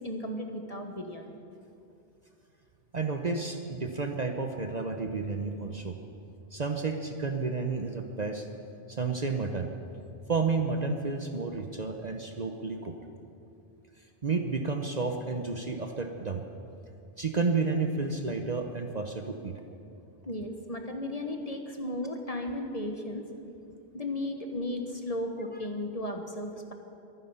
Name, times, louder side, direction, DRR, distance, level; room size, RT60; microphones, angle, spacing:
voice 1, 0.0-1.4 20.3-23.2 23.9-26.7, left 1 dB, 35° left, 4 dB, 1.2 m, -35 dB
voice 2, 2.9-6.0 6.5-8.5 8.9-9.7 10.3-12.9 14.2-16.4 17.2-19.5, right 4 dB, 40° right, 5 dB, 0.9 m, -31 dB
23.5 x 9.6 x 5.6 m, 2.6 s
omnidirectional pair, 1.2 m